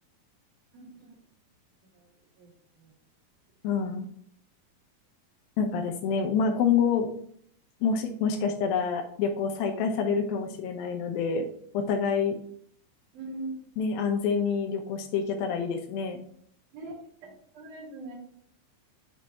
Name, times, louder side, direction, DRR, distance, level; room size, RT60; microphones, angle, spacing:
voice 1, 0.7-1.2 1.9-2.1 2.4-2.5 2.8-2.9 13.1-13.7 16.7-16.9 17.2-18.1, right 2 dB, 80° right, -2 dB, 3.6 m, -41 dB
voice 2, 3.6-4.1 5.6-7.1 7.8-11.5 11.7-12.4 13.8-16.2, left 6 dB, 80° left, 4 dB, 2.6 m, -27 dB
7.4 x 3.4 x 4.2 m, 0.63 s
omnidirectional pair, 4.2 m